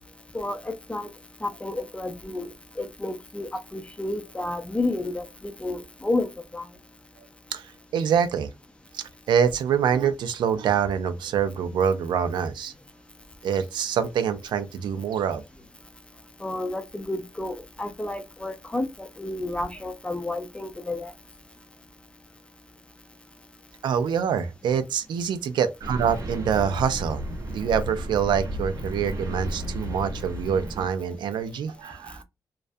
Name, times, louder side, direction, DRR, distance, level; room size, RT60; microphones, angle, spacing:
voice 1, 0.3-1.1 1.4-2.5 2.8-6.7 16.4-21.1, left 2 dB, 15° left, 0.4 m, -31 dB
voice 2, 7.5-8.5 8.9-12.7 13.4-15.4 23.8-27.2 27.5-32.2, right 7 dB, 85° right, 0.4 m, -25 dB
sound 1, 25.8-30.9, equal, 50° right, 0.7 m, -33 dB
2.3 x 2.1 x 2.5 m
cardioid pair, 105°, 8 cm